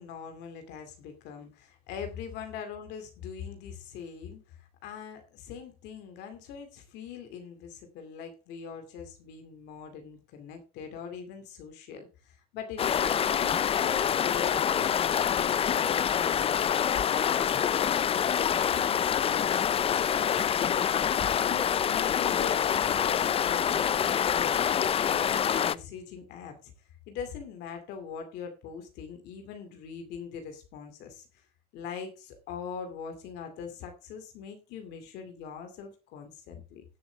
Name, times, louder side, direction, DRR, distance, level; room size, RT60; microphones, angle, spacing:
voice 1, 0.0-20.0 21.4-26.7 27.1-31.3 31.7-36.8, left 7 dB, 90° left, 6 dB, 2.5 m, -42 dB
sound 1, 12.8-25.7, left 8 dB, 35° left, 0.4 m, -26 dB
16.0 x 7.3 x 3.5 m, 0.31 s
cardioid pair, 110°, 17 cm